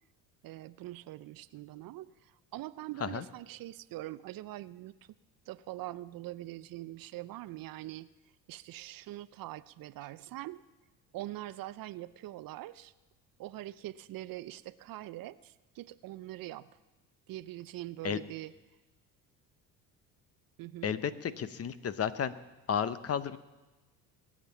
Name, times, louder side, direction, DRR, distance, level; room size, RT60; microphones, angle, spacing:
voice 1, 0.4-4.9 5.5-8.1 8.5-10.6 11.1-12.9 13.4-16.7 17.3-18.5 20.6-20.9, right 16 dB, 50° right, 16 dB, 0.5 m, -43 dB
voice 2, 20.8-22.3 22.7-23.4, left 8 dB, 35° left, 15 dB, 0.8 m, -32 dB
22.0 x 7.4 x 7.1 m, 1.2 s
supercardioid pair, 90°, 43 cm